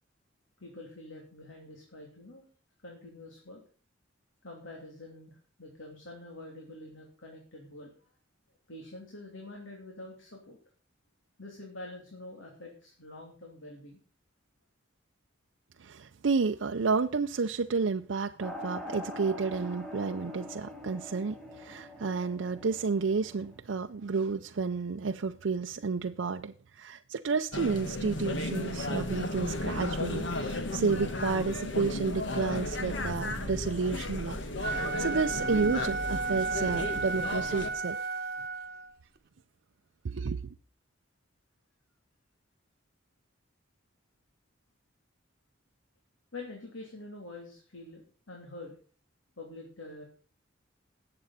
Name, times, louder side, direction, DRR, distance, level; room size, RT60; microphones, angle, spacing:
voice 1, 0.6-2.5 2.8-3.6 4.4-8.1 8.7-10.6 11.4-14.0 46.3-48.8 49.4-50.0, left 2 dB, 90° left, 2.9 m, -46 dB
voice 2, 15.8-38.0 40.0-40.4, right 4 dB, 75° right, 0.5 m, -31 dB
sound 1, 18.4-23.6, left 1 dB, ahead, 1.9 m, -43 dB
sound 2, 27.5-37.7, left 1 dB, 65° left, 1.5 m, -34 dB
Wind instrument woodwind instrument, 34.5-38.9, right 4 dB, 50° right, 1.0 m, -33 dB
19.0 x 7.8 x 4.2 m
head